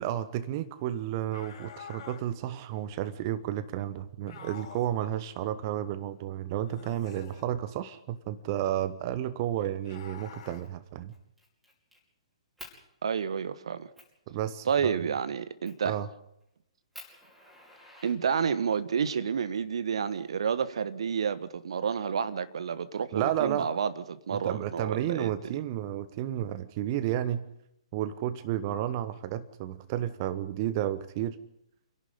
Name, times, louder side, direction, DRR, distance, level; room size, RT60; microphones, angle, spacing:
voice 1, 0.0-11.1 14.3-15.0 15.8-16.1 23.1-23.7 24.4-27.4 27.9-31.4, right 12 dB, 35° right, 1.1 m, -32 dB
sound 1, 1.3-2.2 4.3-5.0 6.6-7.5 9.8-10.6, left 7 dB, 35° left, 5.0 m, -47 dB
Fire, 10.4-10.7 11.1-12.0 12.6-12.8 13.4-13.5 14.0-14.2 15.6-15.9 16.4-16.5 16.9-18.7 19.8-20.7, equal, 5° right, 5.5 m, -50 dB
voice 2, 13.0-13.9 14.6-16.0 18.0-25.5, right 7 dB, 55° right, 1.3 m, -30 dB
29.0 x 11.5 x 10.0 m
figure-of-eight pair, 125°, 3 cm